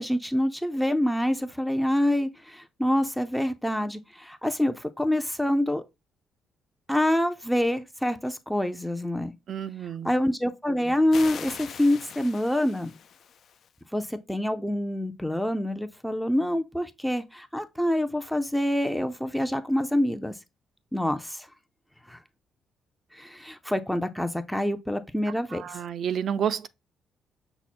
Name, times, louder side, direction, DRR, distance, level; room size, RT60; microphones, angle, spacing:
voice 1, 0.0-5.8 6.9-9.3 10.0-12.9 13.9-20.3 20.9-21.5 22.1-22.2 23.1-25.8, left 1 dB, 5° left, 0.5 m, -26 dB
voice 2, 9.5-10.1 25.5-26.7, right 8 dB, 60° right, 0.4 m, -30 dB
sound 1, 11.1-13.7, left 8 dB, 60° left, 0.5 m, -42 dB
5.8 x 2.1 x 4.2 m
cardioid pair, 90°, 0 cm